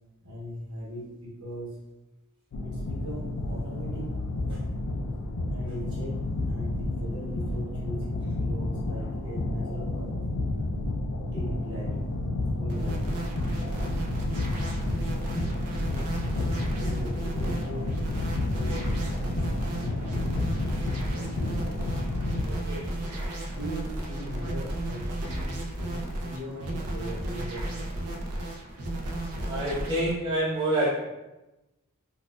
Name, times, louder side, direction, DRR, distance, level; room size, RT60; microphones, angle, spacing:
voice 1, 0.2-1.8 2.6-4.1 5.5-10.2 11.2-12.1 12.3-13.2 16.2-18.1 18.5-18.9 19.7-21.6 23.4-27.7, equal, 65° right, -5 dB, 1.0 m, -39 dB
sound 1, 2.5-22.4, left 2 dB, 90° left, 0.4 m, -31 dB
sound 2, 12.7-30.2, right 1 dB, 90° right, 0.5 m, -34 dB
voice 2, 22.1-22.9 29.5-31.0, right 1 dB, 20° right, -8 dB, 0.9 m, -28 dB
4.2 x 2.4 x 2.2 m, 1.0 s
head